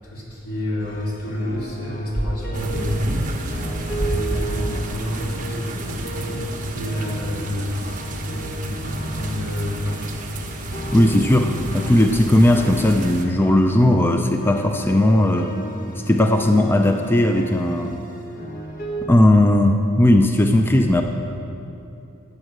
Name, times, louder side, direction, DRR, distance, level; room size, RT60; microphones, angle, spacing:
voice 1, 0.0-3.4 3.9-10.2, equal, 80° left, -5 dB, 3.4 m, -28 dB
sound 1, 0.8-6.6 6.9-19.1, right 1 dB, 40° left, 1.5 m, -34 dB
sound 2, 2.5-13.2, right 1 dB, 35° right, 1.2 m, -32 dB
voice 2, 10.9-15.6 15.9-18.0 19.0-21.0, left 1 dB, 10° left, 5 dB, 0.4 m, -17 dB
14.0 x 8.4 x 6.5 m, 2.9 s
head